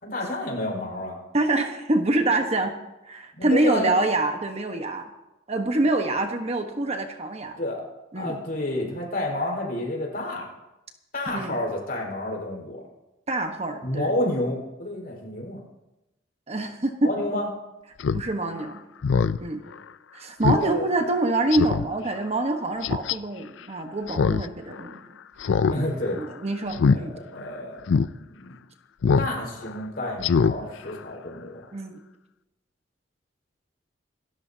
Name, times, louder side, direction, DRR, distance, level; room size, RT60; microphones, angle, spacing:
voice 1, 0.0-1.2 3.3-3.9 7.6-7.8 8.1-10.5 11.1-12.8 13.8-15.6 17.0-17.5 20.5-20.9 25.7-26.2 26.9-27.8 28.1-28.5 29.2-31.6, left 1 dB, 55° left, -2 dB, 4.9 m, -30 dB
voice 2, 1.3-2.7 3.0-5.1 5.5-7.6 8.1-8.4 11.3-11.6 13.3-14.1 16.5-17.1 18.1-18.8 19.4-19.6 20.1-25.0 25.7-25.9 26.1-27.1 31.7-32.0, right 2 dB, 35° right, 5 dB, 1.2 m, -26 dB
Speech synthesizer, 18.0-18.2 18.6-18.7 19.0-19.4 19.8-19.9 20.4-20.6 21.0-21.1 21.5-21.9 22.8-23.1 24.1-24.5 24.7-24.8 25.4-25.8 26.0-26.3 26.7-27.0 27.4-27.5 27.9-28.1 29.0-29.3 29.6-29.8 30.2-30.5 30.9-31.0, left 5 dB, 80° left, 0.4 m, -22 dB
27.5 x 13.0 x 2.8 m, 0.96 s
head